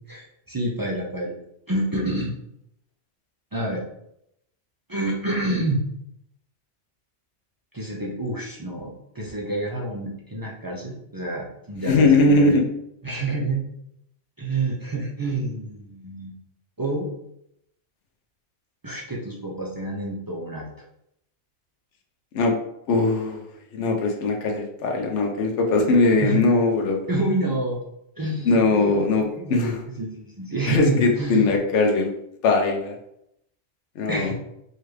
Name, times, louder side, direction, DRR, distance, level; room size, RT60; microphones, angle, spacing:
voice 1, 0.1-1.4 1.7-2.3 3.5-3.8 4.9-5.8 7.7-12.6 13.0-13.6 14.4-16.3 16.8-17.1 18.8-20.7 26.2-26.4 27.1-27.8 28.2-29.7 30.0-31.4 34.1-34.3, right 2 dB, 35° right, -3 dB, 0.3 m, -28 dB
voice 2, 11.8-12.6 22.3-22.6 22.9-23.4 23.7-27.0 28.4-29.8 30.7-32.1 32.4-33.0 34.0-34.3, left 3 dB, 75° left, 2 dB, 1.0 m, -20 dB
4.5 x 2.4 x 3.2 m, 0.78 s
omnidirectional pair, 1.2 m